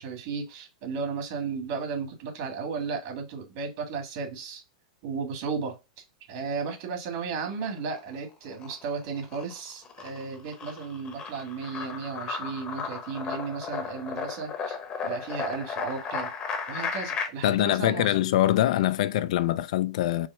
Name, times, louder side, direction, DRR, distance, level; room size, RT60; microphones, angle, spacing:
voice 1, 0.0-4.6 5.0-5.8 6.3-14.8 15.0-16.3 16.7-18.1, right 5 dB, 50° right, 1.6 m, -34 dB
sound 1, 7.3-8.1 8.5-17.3, left 5 dB, 25° left, 0.8 m, -35 dB
voice 2, 17.4-20.3, left 13 dB, 65° left, 0.3 m, -24 dB
4.7 x 2.0 x 4.3 m
supercardioid pair, 140°, 4 cm